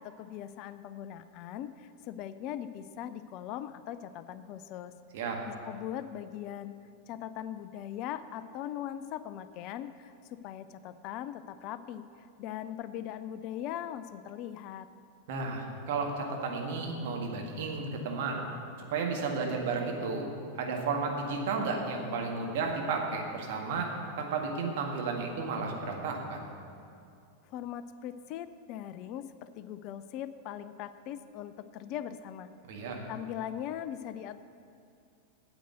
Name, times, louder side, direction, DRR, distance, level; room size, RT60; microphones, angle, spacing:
voice 1, 0.0-4.9 5.5-6.8 7.1-14.9 27.5-32.5 33.1-34.4, left 10 dB, 40° left, 12 dB, 0.4 m, -40 dB
voice 2, 15.3-18.4 18.9-20.3 20.5-23.9 24.2-26.5 32.6-33.0, right 4 dB, 50° right, 0 dB, 1.8 m, -33 dB
9.1 x 8.0 x 8.1 m, 2.4 s
figure-of-eight pair, 90°, 0 cm